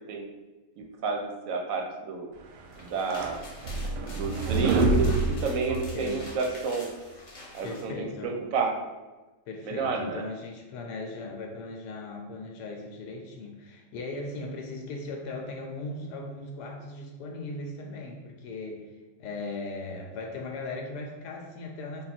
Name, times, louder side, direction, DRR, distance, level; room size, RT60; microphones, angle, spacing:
voice 1, 0.8-2.3 2.8-3.4 3.8-6.9 7.5-8.7 9.6-10.2, right 4 dB, 65° right, 2 dB, 0.9 m, -30 dB
sound 1, 2.6-7.9, left 2 dB, 55° left, 1.0 m, -46 dB
sound 2, 2.6-6.3, right 3 dB, 90° right, 1.2 m, -27 dB
voice 2, 5.7-6.2 7.6-8.4 9.5-22.0, left 2 dB, 80° left, 1 dB, 1.2 m, -38 dB
3.8 x 2.3 x 4.1 m, 1.2 s
omnidirectional pair, 1.8 m